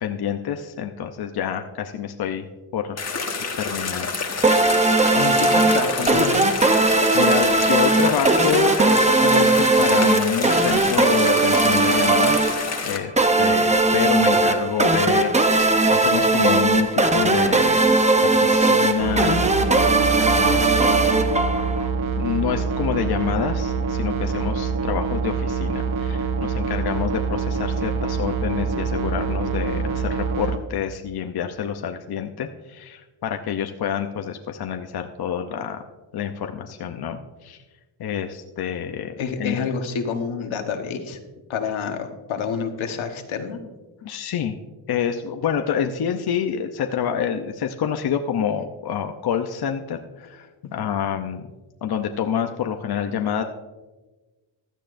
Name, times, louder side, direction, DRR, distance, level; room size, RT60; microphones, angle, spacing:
voice 1, 0.0-2.5 2.7-3.1 3.6-4.1 7.1-12.5 12.8-17.9 18.2-19.5 20.3-20.9 22.2-35.8 36.1-37.6 38.0-39.6 44.0-44.6 44.9-51.5 51.8-53.4, left 8 dB, 55° left, 5 dB, 0.7 m, -27 dB
sound 1, 3.0-13.0, left 4 dB, 35° left, 1.4 m, -29 dB
sound 2, 4.4-21.9, right 2 dB, 15° right, 0.7 m, -19 dB
voice 2, 5.1-6.4 15.6-15.7 39.2-41.2 41.5-43.6, left 6 dB, 90° left, 5 dB, 1.4 m, -28 dB
sound 3, 19.0-30.6, right 5 dB, 80° right, 1.0 m, -25 dB
15.5 x 12.0 x 2.6 m, 1.2 s
wide cardioid pair, 135°, 46 cm